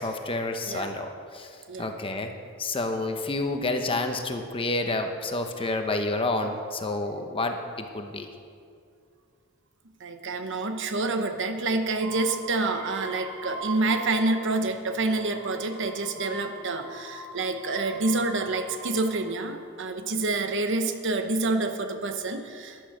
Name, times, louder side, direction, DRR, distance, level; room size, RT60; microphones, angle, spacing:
voice 1, 0.0-1.5 1.8-2.3 2.6-8.3, left 2 dB, 25° left, 5 dB, 0.9 m, -29 dB
voice 2, 10.0-22.8, right 2 dB, 60° right, 7 dB, 0.9 m, -28 dB
sound 1, 12.0-14.5 14.9-19.4 20.2-20.8, right 2 dB, 40° right, 3.0 m, -41 dB
12.5 x 11.0 x 5.1 m, 2.3 s
head